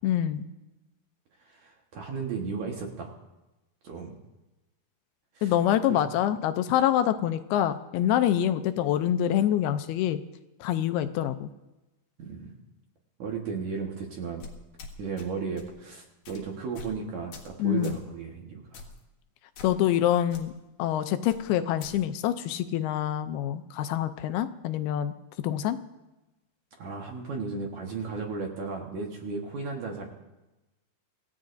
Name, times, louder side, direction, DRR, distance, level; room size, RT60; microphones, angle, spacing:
voice 1, 0.0-0.5 5.4-10.2 10.6-11.5 17.6-18.0 19.6-20.5 20.8-25.1 25.4-25.8, left 11 dB, 80° left, 10 dB, 2.5 m, -26 dB
voice 2, 1.4-3.1 3.8-4.2 5.3-5.5 5.9-6.0 12.2-12.5 13.2-14.4 15.0-18.8 26.8-30.1, right 5 dB, 60° right, 0 dB, 2.2 m, -35 dB
sound 1, 14.4-15.3 15.6-15.8 16.2-16.4 16.8-17.0 17.3-17.5 17.8-18.0 18.7-19.0 19.6-20.0 20.3-20.4 21.3-21.9, left 4 dB, 60° left, 2.9 m, -45 dB
26.0 x 15.5 x 2.6 m, 1.0 s
omnidirectional pair, 4.6 m